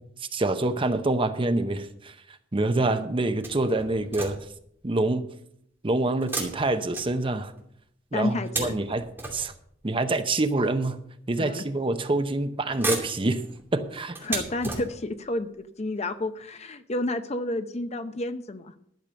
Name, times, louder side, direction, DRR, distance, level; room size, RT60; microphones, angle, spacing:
voice 1, 0.3-2.1 2.5-4.4 4.8-5.2 5.8-7.5 8.1-9.0 9.3-9.5 9.8-11.0 11.3-13.4 13.7-14.2, right 2 dB, 25° right, 9 dB, 0.7 m, -26 dB
sound 1, 3.4-4.7 6.2-7.6 8.2-9.8 10.7-10.8 11.9-12.3 12.6-15.3 16.0-16.1 16.4-16.5, right 3 dB, 10° right, 2.6 m, -35 dB
voice 2, 8.1-8.7 11.4-11.6 14.2-18.7, left 1 dB, 35° left, 10 dB, 0.7 m, -30 dB
12.0 x 6.7 x 6.8 m, 0.70 s
head